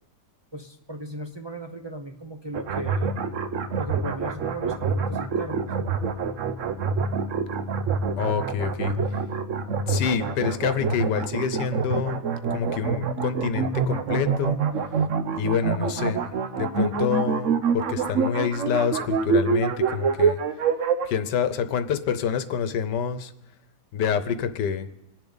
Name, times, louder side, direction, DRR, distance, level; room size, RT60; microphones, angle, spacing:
voice 1, 0.5-3.2 3.8-5.9, right 1 dB, 40° right, 3 dB, 0.3 m, -37 dB
sound 1, 2.5-21.1, right 5 dB, 55° right, 1.0 m, -26 dB
voice 2, 8.2-8.9 9.9-12.2 12.5-14.6 15.3-20.4 21.0-23.3 23.9-24.9, left 7 dB, 80° left, 11 dB, 1.5 m, -27 dB
28.0 x 10.5 x 4.0 m, 0.88 s
omnidirectional pair, 1.8 m